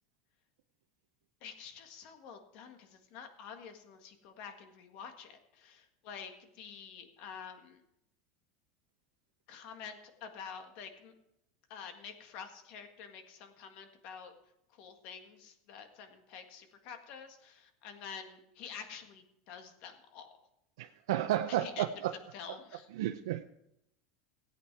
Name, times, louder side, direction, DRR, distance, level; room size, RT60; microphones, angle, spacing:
voice 1, 1.4-7.8 9.5-11.1 11.7-14.3 14.7-20.4 21.5-22.0 22.3-22.9, left 7 dB, 50° left, 6 dB, 1.7 m, -48 dB
voice 2, 20.8-22.1 23.0-23.4, right 12 dB, 90° right, 5 dB, 0.6 m, -32 dB
16.5 x 8.6 x 4.7 m, 0.81 s
supercardioid pair, 155°, 2 cm